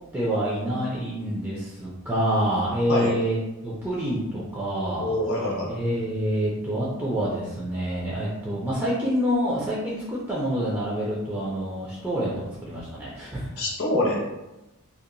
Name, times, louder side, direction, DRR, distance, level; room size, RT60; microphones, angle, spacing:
voice 1, 0.1-3.4 3.6-12.3 12.6-13.5, equal, 10° right, -7 dB, 0.3 m, -27 dB
voice 2, 5.0-5.7 13.6-14.2, left 1 dB, 65° left, -4 dB, 0.7 m, -25 dB
2.8 x 2.0 x 2.5 m, 0.99 s
head